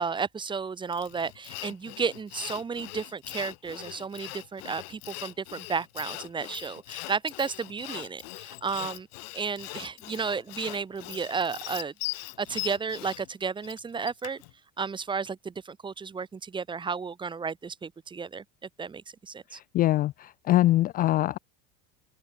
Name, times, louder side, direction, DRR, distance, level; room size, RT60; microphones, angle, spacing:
voice 1, 0.0-9.1 9.3-11.9 12.4-14.4 14.8-18.4 18.8-19.6, right 5 dB, 15° right, 1.6 m, -33 dB
Sawing, 0.9-14.5, left 26 dB, 80° left, 1.0 m, -40 dB
voice 2, 19.5-21.4, left 15 dB, 30° left, 0.4 m, -24 dB
open air
supercardioid pair, 140°, 29 cm